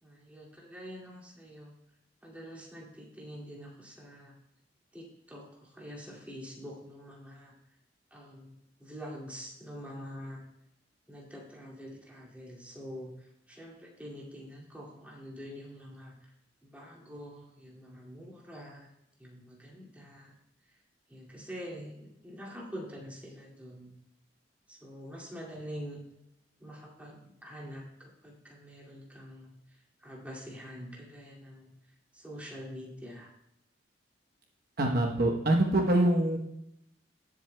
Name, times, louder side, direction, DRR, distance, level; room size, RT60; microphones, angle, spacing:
voice 1, 0.0-1.7 2.2-4.3 4.9-7.6 8.1-10.4 11.1-16.3 16.6-18.9 19.2-20.4 20.7-20.8 21.1-23.9 24.7-26.0 26.6-33.3, equal, 10° right, -4 dB, 2.3 m, -46 dB
voice 2, 34.8-36.4, right 1 dB, 55° right, 1 dB, 1.0 m, -25 dB
17.5 x 7.7 x 2.2 m, 0.81 s
head